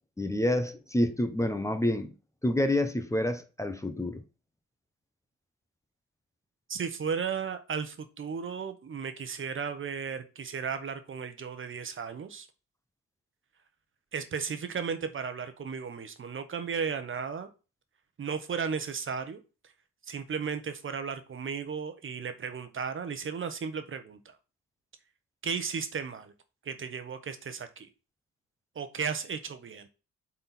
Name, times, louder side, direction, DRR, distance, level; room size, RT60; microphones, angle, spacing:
voice 1, 0.2-2.1 2.4-4.2, left 1 dB, 10° left, 1.0 m, -28 dB
voice 2, 6.7-12.5 14.1-17.5 18.2-19.4 20.0-24.4 25.4-26.3 26.6-27.9 28.7-29.9, right 6 dB, 45° right, 1.1 m, -35 dB
7.6 x 4.4 x 4.2 m
cardioid pair, 90°, 30 cm